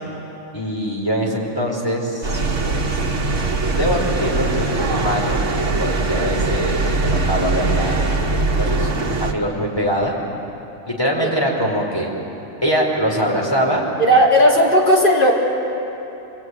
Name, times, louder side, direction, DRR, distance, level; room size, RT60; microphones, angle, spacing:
voice 1, 0.5-2.9 3.7-5.5 5.8-8.1 8.6-8.9 9.2-10.1 10.9-12.1 12.6-13.8, equal, 20° left, -2 dB, 5.1 m, -23 dB
sound 1, 2.2-9.3, right 3 dB, 70° right, 2.0 m, -21 dB
voice 2, 14.0-15.3, equal, 40° left, -4 dB, 4.2 m, -14 dB
28.0 x 21.5 x 9.7 m, 3.0 s
omnidirectional pair, 1.3 m